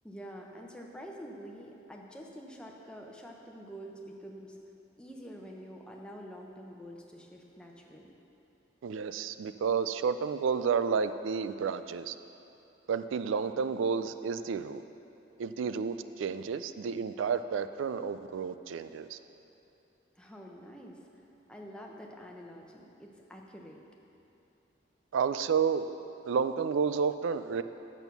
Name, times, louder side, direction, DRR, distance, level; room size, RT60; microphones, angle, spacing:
voice 1, 0.0-4.6 5.0-8.1 20.1-21.2 21.5-23.8, equal, 5° left, 0 dB, 0.7 m, -47 dB
voice 2, 8.8-12.2 12.9-14.8 15.4-19.2 25.1-25.8 26.2-27.6, right 6 dB, 85° right, 11 dB, 0.3 m, -31 dB
8.9 x 6.3 x 6.8 m, 2.9 s
head